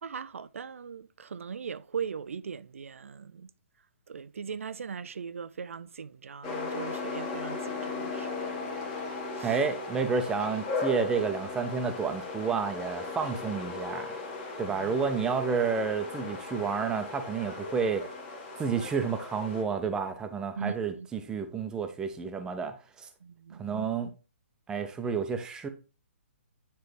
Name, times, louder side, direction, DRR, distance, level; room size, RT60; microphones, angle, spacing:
voice 1, 0.0-3.5 4.1-8.7 9.3-9.6 14.6-15.0 20.6-21.1 23.2-23.9, right 6 dB, 85° right, 0.3 m, -39 dB
sound 1, 6.4-19.6, left 4 dB, 30° left, 1.4 m, -37 dB
voice 2, 9.4-14.2 14.6-18.1 18.6-23.1 23.6-24.1 24.7-25.7, right 5 dB, 10° right, 0.6 m, -30 dB
9.4 x 3.3 x 3.2 m
hypercardioid pair, 150°, 7 cm